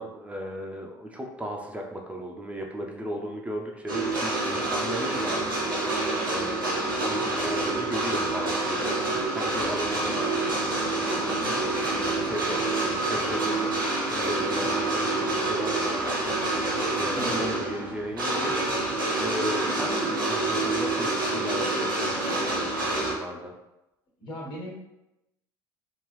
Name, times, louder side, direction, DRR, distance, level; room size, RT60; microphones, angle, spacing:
voice 1, 0.0-23.5, equal, 10° right, 0 dB, 0.6 m, -36 dB
sound 1, 3.9-23.1, right 2 dB, 90° right, 0.8 m, -27 dB
sound 2, 6.8-18.8, left 1 dB, 70° left, 1.2 m, -45 dB
voice 2, 24.2-24.7, right 1 dB, 45° left, -3 dB, 1.5 m, -37 dB
3.7 x 2.4 x 3.1 m, 0.93 s
figure-of-eight pair, 60°, 11 cm